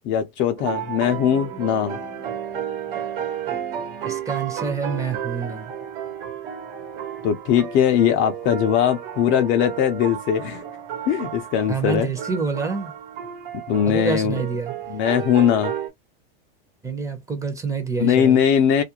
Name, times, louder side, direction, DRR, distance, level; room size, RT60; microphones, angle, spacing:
voice 1, 0.0-2.0 7.2-10.6 11.1-12.1 13.7-14.4 14.9-15.7 18.0-18.8, left 9 dB, 40° left, 0.5 m, -20 dB
sound 1, 0.6-15.9, right 9 dB, 65° right, 1.1 m, -32 dB
voice 2, 4.0-5.7 11.7-12.9 13.9-14.7 16.8-18.4, right 5 dB, 10° right, 0.7 m, -27 dB
2.4 x 2.1 x 2.8 m
supercardioid pair, 130°, 30 cm